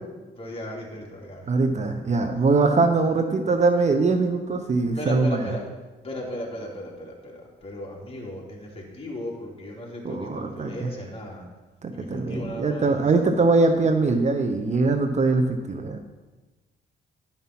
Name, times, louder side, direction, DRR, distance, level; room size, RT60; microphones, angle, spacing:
voice 1, 0.4-1.7 5.0-5.6 6.0-11.5 11.9-13.0, left 1 dB, 30° left, -2 dB, 2.9 m, -36 dB
voice 2, 1.5-5.6 10.0-10.9 11.8-16.0, right 3 dB, 35° right, 6 dB, 0.8 m, -22 dB
11.0 x 5.7 x 6.0 m, 1.2 s
cardioid pair, 90°, 20 cm